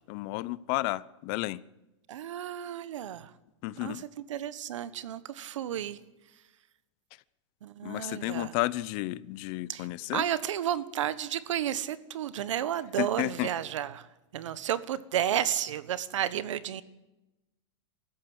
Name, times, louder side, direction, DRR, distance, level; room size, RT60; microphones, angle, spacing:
voice 1, 0.1-1.6 3.6-4.0 7.8-10.3 13.0-13.5, left 19 dB, 40° left, 20 dB, 0.7 m, -32 dB
voice 2, 2.1-3.3 3.8-3.9 4.3-6.0 7.6-8.5 9.7-9.8 10.1-14.1 14.3-16.8, right 10 dB, 80° right, 16 dB, 1.4 m, -32 dB
24.0 x 14.0 x 8.0 m, 1.0 s
supercardioid pair, 155°, 16 cm